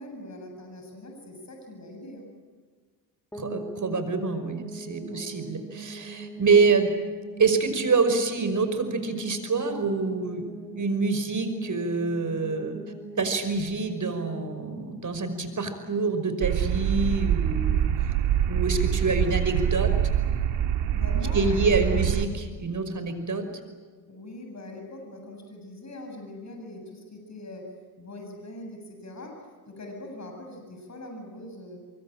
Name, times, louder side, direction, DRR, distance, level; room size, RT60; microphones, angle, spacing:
voice 1, 0.0-2.3 5.1-5.3 20.9-22.0 24.1-31.8, left 1 dB, 35° left, 2 dB, 8.0 m, -42 dB
sound 1, 3.3-16.2, right 3 dB, 5° left, 4.2 m, -42 dB
voice 2, 3.3-6.9 7.4-10.5 10.8-12.8 13.2-18.1 18.5-19.9 21.3-23.4, right 4 dB, 40° right, 9 dB, 5.6 m, -26 dB
sound 2, 16.4-22.2, right 10 dB, 70° right, 2.3 m, -25 dB
24.5 x 24.0 x 9.0 m, 1.6 s
supercardioid pair, 60°, 45 cm